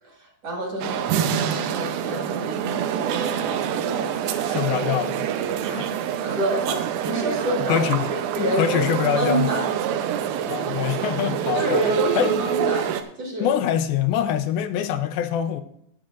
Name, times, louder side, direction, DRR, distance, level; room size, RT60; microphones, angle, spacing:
voice 1, 0.0-4.4 5.6-9.7 11.5-13.5, right 1 dB, 45° right, 0 dB, 2.7 m, -29 dB
sound 1, 0.8-13.0, right 9 dB, 80° right, 2.5 m, -26 dB
voice 2, 4.3-5.3 5.8-5.9 7.7-8.1 8.6-9.5 10.5-11.8 12.2-12.4 13.4-15.6, left 10 dB, 85° left, 9 dB, 2.5 m, -24 dB
19.5 x 7.6 x 2.5 m, 0.71 s
omnidirectional pair, 4.3 m